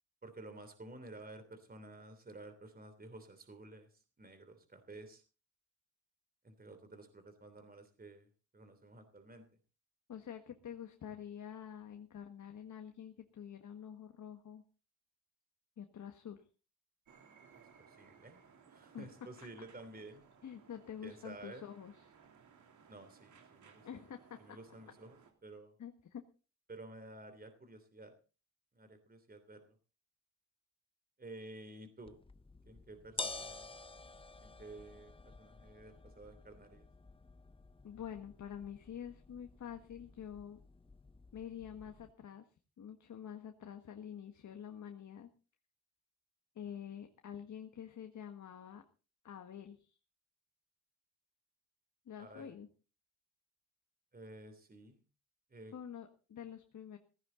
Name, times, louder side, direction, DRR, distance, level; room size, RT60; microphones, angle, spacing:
voice 1, 0.2-3.9 4.2-5.2 6.4-8.3 8.5-9.4 17.8-18.4 18.7-20.2 21.0-21.7 22.9-24.1 24.4-25.7 26.7-28.1 28.7-29.7 31.2-32.2 32.7-33.7 34.4-36.9 52.2-52.5 54.1-55.0 55.5-55.7, right 2 dB, 30° right, 8 dB, 3.1 m, -52 dB
voice 2, 10.1-14.6 15.8-16.4 18.9-19.1 20.4-22.1 23.8-24.6 25.8-26.2 37.8-40.6 41.3-42.5 42.8-45.3 46.5-48.8 49.2-50.0 52.0-52.7 55.7-57.0, left 9 dB, 80° left, 6 dB, 1.7 m, -47 dB
sound 1, 17.1-25.3, right 6 dB, 80° right, 3.3 m, -62 dB
sound 2, 32.0-42.1, left 3 dB, 20° left, 0.7 m, -50 dB
16.0 x 15.5 x 3.9 m, 0.35 s
cardioid pair, 85°, 29 cm